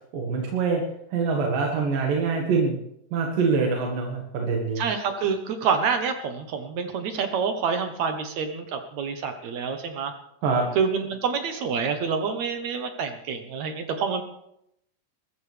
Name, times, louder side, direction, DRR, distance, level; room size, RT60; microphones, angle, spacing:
voice 1, 0.1-0.8 1.1-2.8 3.1-4.8 10.4-10.7, right 4 dB, 80° right, 0 dB, 3.4 m, -24 dB
voice 2, 4.8-10.1 10.8-14.2, right 6 dB, 65° right, 6 dB, 2.2 m, -27 dB
21.5 x 14.0 x 3.4 m, 0.77 s
omnidirectional pair, 3.9 m